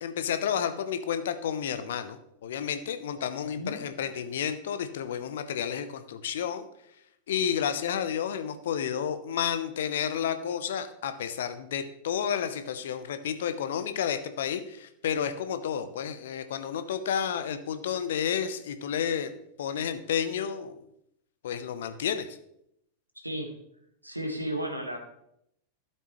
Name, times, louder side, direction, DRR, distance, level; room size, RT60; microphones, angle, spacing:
voice 1, 0.0-6.7 7.3-20.8 21.4-22.3, left 8 dB, 60° left, 10 dB, 0.9 m, -31 dB
voice 2, 3.4-3.8 23.2-23.5 24.0-25.0, right 1 dB, 85° right, 3 dB, 1.6 m, -34 dB
13.0 x 7.7 x 3.1 m, 0.76 s
figure-of-eight pair, 90°, 0 cm